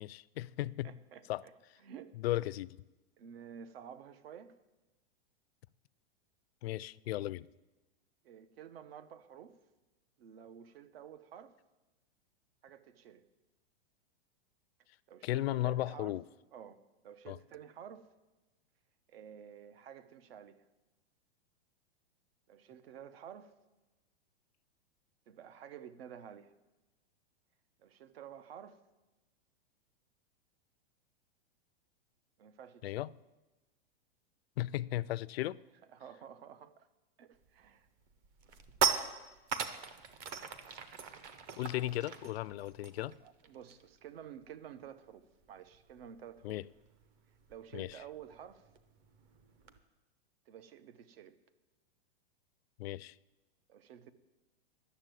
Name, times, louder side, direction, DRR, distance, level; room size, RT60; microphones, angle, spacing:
voice 1, 0.0-0.9 1.3-1.4 2.2-2.8 6.6-7.5 15.2-16.2 17.3-17.4 32.8-33.1 34.6-35.6 41.6-43.1 46.4-46.6 47.7-48.0 52.8-53.2, left 15 dB, 75° left, 0.4 m, -35 dB
voice 2, 0.8-1.5 1.8-2.4 3.2-4.6 8.2-9.6 10.2-11.5 12.6-13.2 15.1-16.2 16.5-18.1 19.1-20.6 22.5-23.5 25.3-26.5 27.8-28.8 32.4-33.0 35.9-36.9 37.2-37.9 43.2-46.6 47.5-48.6 50.5-51.4 53.7-54.1, right 9 dB, 70° right, 1.0 m, -51 dB
sound 1, 37.4-37.7 38.1-44.0 44.3-44.5 44.8-49.8, right 6 dB, 30° right, 0.7 m, -39 dB
11.0 x 7.0 x 9.0 m
supercardioid pair, 160°, 31 cm